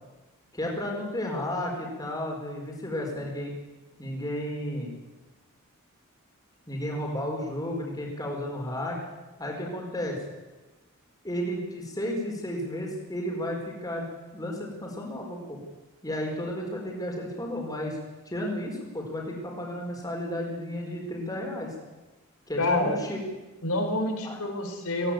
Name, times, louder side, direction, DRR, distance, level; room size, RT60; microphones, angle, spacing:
voice 1, 0.5-3.5 4.0-4.9 6.7-9.0 9.4-10.2 11.2-14.1 14.3-15.6 16.0-18.0 18.3-21.7 22.5-23.2 24.2-24.4, left 1 dB, 15° left, -1 dB, 4.4 m, -33 dB
voice 2, 22.6-23.0 23.6-25.1, left 1 dB, 80° left, 4 dB, 4.8 m, -27 dB
19.0 x 17.0 x 9.1 m, 1.1 s
head